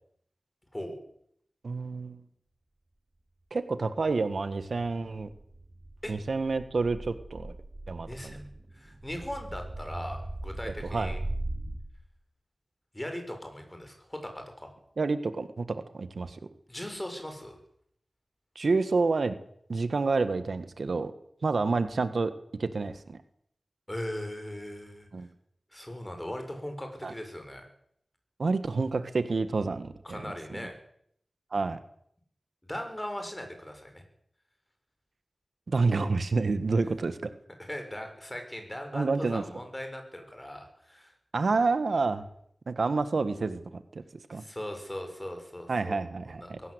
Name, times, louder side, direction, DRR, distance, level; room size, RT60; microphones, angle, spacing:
voice 1, 1.6-2.2 3.5-5.3 6.1-7.5 7.9-8.4 10.6-11.1 15.0-16.4 18.5-19.4 19.7-21.1 21.4-22.3 22.6-23.2 25.1-25.3 27.0-27.1 28.4-30.3 31.5-31.8 35.7-37.3 38.9-39.4 41.3-42.2 42.7-43.8 44.3-44.4 45.7-46.6, right 3 dB, 70° right, 11 dB, 1.7 m, -28 dB
sound 1, 5.3-11.8, right 1 dB, 35° right, 6.5 m, -39 dB
voice 2, 8.1-11.2 12.9-14.7 16.7-17.6 23.9-25.1 25.7-27.7 30.0-30.7 32.6-34.0 37.6-41.1 44.3-46.0 46.3-46.7, left 1 dB, 15° left, 5 dB, 6.8 m, -39 dB
23.0 x 17.5 x 8.2 m, 0.69 s
wide cardioid pair, 75°, 0 cm